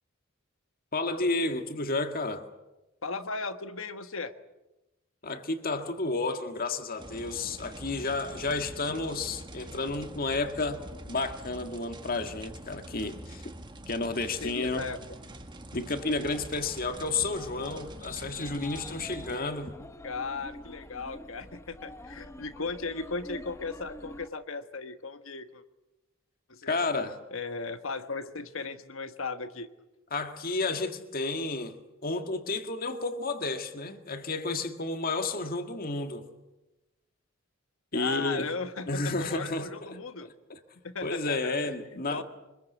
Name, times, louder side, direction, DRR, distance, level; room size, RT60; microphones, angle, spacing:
voice 1, 0.9-2.4 5.2-13.5 13.9-14.9 15.7-19.7 26.7-27.2 30.1-36.3 37.9-38.5 38.9-40.6 41.0-42.2, left 3 dB, 45° left, 1.9 m, -31 dB
voice 2, 3.0-4.3 14.4-15.0 20.0-25.6 26.5-26.8 27.3-29.7 37.9-40.3 40.8-42.2, left 4 dB, 70° left, 1.4 m, -36 dB
sound 1, 7.0-19.4, right 1 dB, 20° right, 1.4 m, -45 dB
sound 2, 16.0-24.3, left 1 dB, 15° left, 1.0 m, -47 dB
25.0 x 21.5 x 8.3 m
head